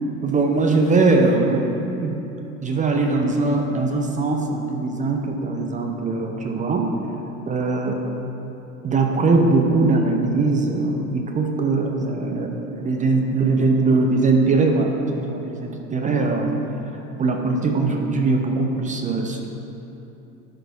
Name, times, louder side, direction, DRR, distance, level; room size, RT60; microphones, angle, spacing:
voice 1, 0.2-1.7 2.0-2.2 2.6-6.9 7.5-8.0 8.8-16.6 17.2-19.5, right 3 dB, 15° right, 2 dB, 0.6 m, -21 dB
11.0 x 4.1 x 4.6 m, 2.9 s
figure-of-eight pair, 80°, 47 cm